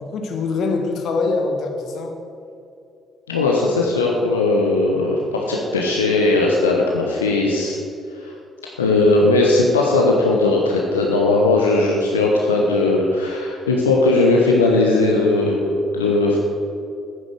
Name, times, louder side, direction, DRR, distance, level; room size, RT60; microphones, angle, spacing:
voice 1, 0.0-2.1, left 3 dB, 60° left, 4 dB, 1.4 m, -23 dB
voice 2, 3.3-7.8 8.2-8.3 8.8-16.4, left 2 dB, 85° left, -1 dB, 1.0 m, -18 dB
9.7 x 9.1 x 6.5 m, 2.6 s
figure-of-eight pair, 45°, 0 cm